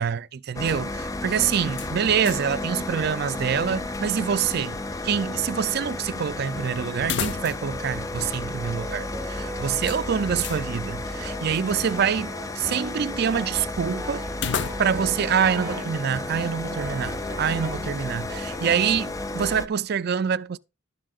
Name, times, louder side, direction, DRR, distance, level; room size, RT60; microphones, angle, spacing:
voice 1, 0.0-4.8 5.0-14.3 14.8-20.6, right 7 dB, 55° right, 0.4 m, -26 dB
sound 1, 0.6-19.7, left 2 dB, 15° left, 0.4 m, -32 dB
sound 2, 1.7-2.6 2.9-3.0 7.0-7.8 8.1-8.2 9.8-10.7 14.3-15.2, left 6 dB, 60° left, 0.6 m, -32 dB
Brass instrument, 2.2-3.9 4.6-6.7 7.4-16.0 16.6-18.0 18.3-19.1, equal, 15° right, 1.0 m, -43 dB
12.0 x 7.5 x 2.4 m
head